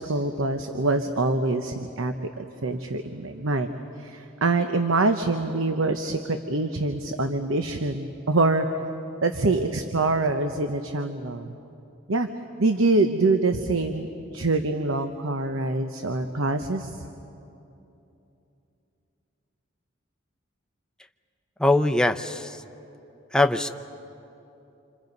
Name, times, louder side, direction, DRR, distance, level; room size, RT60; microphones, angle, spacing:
voice 1, 0.0-3.7 4.0-8.8 9.2-11.5 12.1-12.3 12.6-17.0, right 2 dB, 85° right, 7 dB, 1.0 m, -25 dB
voice 2, 21.6-22.6 23.3-23.7, left 2 dB, 5° left, 7 dB, 0.6 m, -22 dB
27.5 x 27.5 x 5.4 m, 2.8 s
head